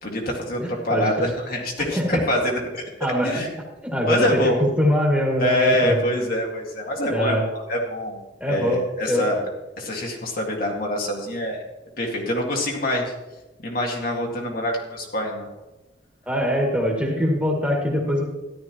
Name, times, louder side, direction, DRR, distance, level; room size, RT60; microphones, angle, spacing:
voice 1, 0.0-2.8 3.2-3.5 4.1-4.6 5.4-7.4 7.7-8.2 8.5-9.4 9.8-11.6 12.0-13.1 13.6-15.5, left 1 dB, 55° left, -1 dB, 2.0 m, -25 dB
voice 2, 0.6-1.3 1.8-2.2 3.0-3.4 3.8-6.0 7.1-7.4 8.4-9.3 16.3-18.3, equal, 10° right, -1 dB, 2.1 m, -23 dB
14.0 x 11.0 x 3.0 m, 1.1 s
head